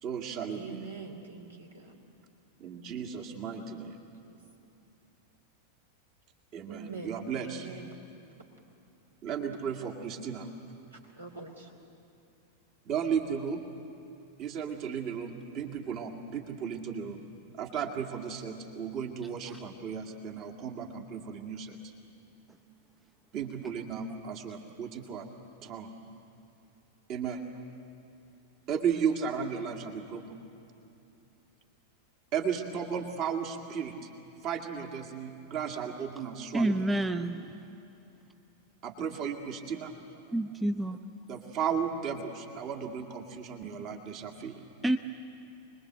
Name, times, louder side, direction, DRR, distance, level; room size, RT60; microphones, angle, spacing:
voice 1, 0.0-0.8 2.6-4.0 6.5-7.7 9.2-10.5 12.8-13.6 14.4-17.2 17.5-21.8 23.3-25.3 25.6-25.9 27.1-27.4 28.7-30.4 32.3-33.9 34.4-36.9 38.8-39.9 41.3-44.6, right 7 dB, 40° right, 3 dB, 2.1 m, -35 dB
voice 2, 0.5-2.0 4.2-4.4 6.7-7.9 9.8-9.9 10.9-11.7, right 4 dB, 75° right, 2 dB, 2.8 m, -44 dB
voice 3, 36.5-37.5 40.3-41.0 44.8-45.0, right 1 dB, 10° right, 6 dB, 0.7 m, -28 dB
26.0 x 21.0 x 8.0 m, 2.8 s
figure-of-eight pair, 90°, 0 cm